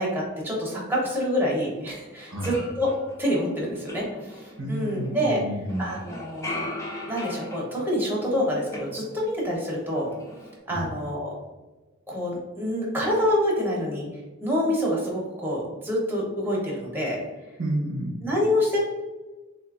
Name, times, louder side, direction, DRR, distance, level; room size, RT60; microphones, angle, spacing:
voice 1, 0.0-2.9 3.2-5.4 5.8-6.7 7.1-10.1 10.7-11.3 12.1-14.1 14.4-17.2 18.2-18.8, equal, 10° right, -4 dB, 0.8 m, -27 dB
sound 1, 1.8-1.9 2.2-5.3 5.6-9.6 9.8-10.6, left 2 dB, 15° left, 0.6 m, -39 dB
voice 2, 4.6-5.9 10.7-10.9 17.6-18.2, right 1 dB, 80° right, -1 dB, 0.8 m, -30 dB
3.9 x 2.5 x 2.4 m, 1.2 s
head